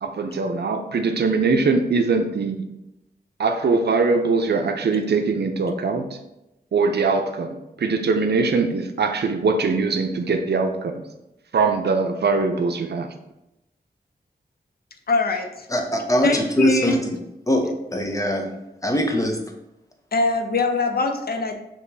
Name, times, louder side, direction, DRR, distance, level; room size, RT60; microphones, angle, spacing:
voice 1, 0.0-2.6 3.4-6.1 6.7-11.0 11.5-13.1, right 4 dB, 75° right, 6 dB, 0.5 m, -22 dB
voice 2, 15.1-15.7 16.2-17.0 20.1-21.6, left 3 dB, 65° left, 4 dB, 0.6 m, -22 dB
voice 3, 15.7-17.0 17.5-18.5 18.8-19.4, equal, 20° left, 2 dB, 0.7 m, -22 dB
6.4 x 2.9 x 2.7 m, 0.91 s
wide cardioid pair, 75°, 17 cm